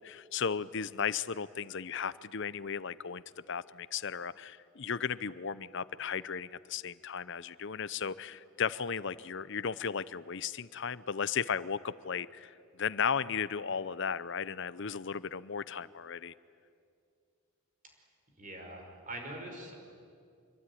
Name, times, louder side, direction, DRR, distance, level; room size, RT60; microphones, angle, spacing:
voice 1, 0.0-16.3, left 6 dB, 55° left, 17 dB, 0.7 m, -35 dB
voice 2, 18.4-19.7, right 1 dB, 35° right, 2 dB, 5.3 m, -43 dB
26.0 x 22.0 x 10.0 m, 2.4 s
head